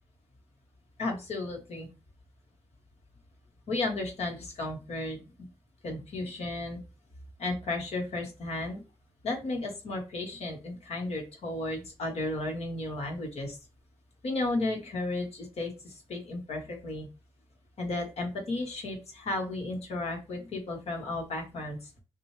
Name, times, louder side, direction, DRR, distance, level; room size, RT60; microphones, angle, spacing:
voice 1, 1.0-1.9 3.7-5.2 5.8-6.8 7.4-8.8 9.2-13.6 14.2-17.1 17.8-21.8, left 2 dB, 85° left, 1 dB, 1.4 m, -34 dB
5.8 x 2.4 x 3.3 m, 0.30 s
cardioid pair, 45°, 11 cm